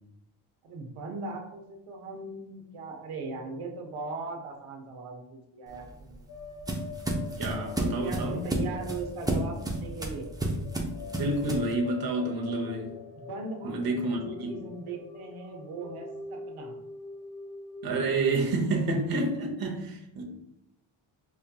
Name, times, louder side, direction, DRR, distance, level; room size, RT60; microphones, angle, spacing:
voice 1, 0.6-6.2 7.9-10.3 13.2-16.8, right 3 dB, 90° right, 1 dB, 0.8 m, -39 dB
sound 1, 5.7-11.7, right 1 dB, 10° right, 0.3 m, -32 dB
sound 2, 6.3-18.1, left 5 dB, 65° left, 1.1 m, -44 dB
voice 2, 7.4-8.4 11.2-13.0 13.6-14.5 17.8-20.2, right 2 dB, 45° right, 1 dB, 0.7 m, -29 dB
4.9 x 2.7 x 2.2 m, 0.82 s
wide cardioid pair, 125°, 49 cm